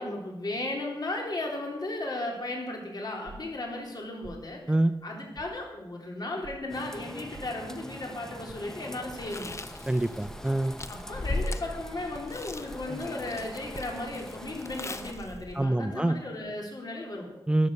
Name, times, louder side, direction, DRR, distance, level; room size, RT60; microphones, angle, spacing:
voice 1, 0.0-4.6 5.0-9.6 10.9-17.3, left 2 dB, 50° left, 0 dB, 4.1 m, -35 dB
sound 1, 3.2-3.6 4.2-4.4 5.3-5.5 6.4-6.6 7.3-7.5 8.5-8.6 9.4-9.6 10.2-10.5 10.9-11.2 11.7-12.0 12.7-13.0 13.7-13.8, right 3 dB, 70° right, 4.8 m, -47 dB
sound 2, 6.7-15.1, equal, 5° left, 1.1 m, -45 dB
Chewing mastication, 9.1-15.6, left 2 dB, 35° left, 0.8 m, -38 dB
voice 2, 9.9-10.7 15.5-16.2 17.5-17.7, right 1 dB, 10° right, 10 dB, 0.6 m, -25 dB
13.5 x 12.0 x 6.6 m, 0.97 s
wide cardioid pair, 105°, 9 cm